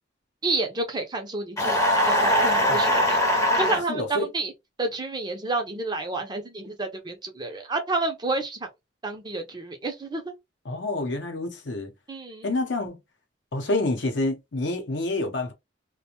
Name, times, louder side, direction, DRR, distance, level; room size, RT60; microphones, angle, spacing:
voice 1, 0.4-1.8 2.0-3.2 3.6-4.5 4.8-8.7 9.0-10.3 12.1-12.5, right 3 dB, 25° right, 0.5 m, -29 dB
sound 1, 1.6-3.8, equal, 15° left, 0.6 m, -21 dB
voice 2, 3.9-4.3 10.6-11.9 12.4-13.0 13.5-15.5, left 2 dB, 70° left, 0.7 m, -28 dB
2.5 x 2.1 x 2.9 m
head